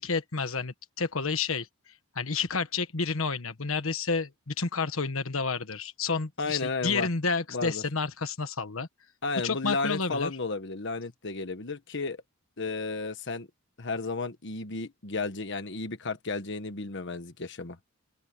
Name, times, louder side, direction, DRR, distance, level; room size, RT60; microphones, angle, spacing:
voice 1, 0.0-1.7 2.1-8.9 9.4-10.3, left 4 dB, 75° left, 1.4 m, -30 dB
voice 2, 6.4-7.1 7.5-7.8 9.2-12.2 12.6-13.5 13.8-17.8, left 3 dB, 55° left, 1.3 m, -33 dB
open air
head